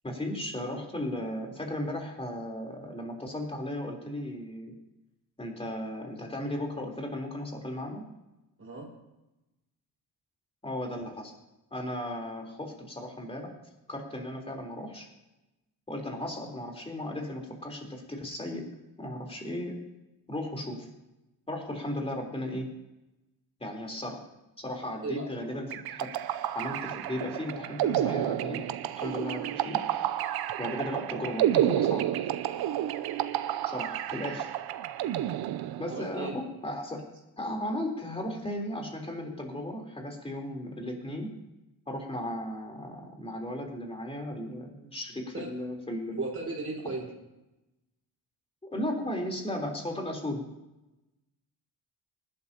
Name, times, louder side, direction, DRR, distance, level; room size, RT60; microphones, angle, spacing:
voice 1, 0.0-4.7 5.4-8.1 10.6-11.3 11.7-13.5 13.9-15.1 15.9-18.7 19.0-19.8 20.3-20.9 21.5-22.7 23.6-24.2 24.6-26.1 26.5-28.6 29.0-29.8 30.6-32.1 33.7-34.5 35.8-37.0 37.4-41.3 41.9-46.2 48.7-50.4, left 1 dB, 15° left, 1 dB, 3.7 m, -35 dB
voice 2, 24.8-25.2 35.9-36.3 45.3-45.5 46.2-47.0, right 3 dB, 35° right, -3 dB, 4.9 m, -35 dB
sound 1, 25.7-36.1, right 12 dB, 75° right, 0.7 m, -30 dB
20.0 x 12.0 x 2.9 m, 0.98 s
cardioid pair, 110°, 38 cm